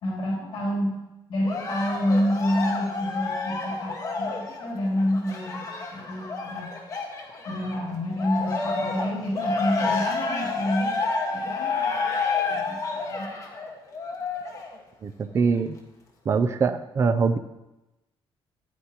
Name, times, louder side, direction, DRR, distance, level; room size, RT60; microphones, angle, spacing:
voice 1, 0.0-1.0 1.3-6.7 7.4-10.9 11.3-12.1 12.5-13.3, equal, 70° left, -4 dB, 2.9 m, -28 dB
Cheering, 1.5-7.8 8.2-14.7 15.4-15.5, left 4 dB, 35° left, 1.4 m, -29 dB
voice 2, 15.0-15.8 16.3-17.4, right 5 dB, 30° right, 10 dB, 0.4 m, -23 dB
13.0 x 9.3 x 2.9 m, 0.98 s
cardioid pair, 160°, 9 cm